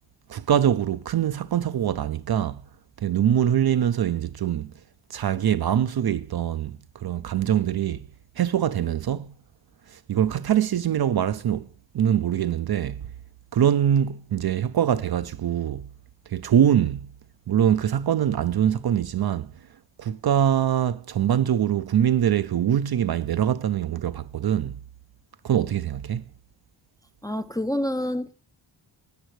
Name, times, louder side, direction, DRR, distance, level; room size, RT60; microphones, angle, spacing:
voice 1, 0.3-2.6 3.0-4.7 5.1-8.1 8.4-9.3 9.9-11.7 11.9-13.1 13.5-15.9 16.3-17.1 17.5-19.5 20.0-24.8 25.4-26.2, right 10 dB, 50° right, 0.4 m, -23 dB
voice 2, 27.2-28.3, left 1 dB, 10° left, 0.4 m, -27 dB
18.5 x 8.9 x 3.1 m
wide cardioid pair, 80°, 49 cm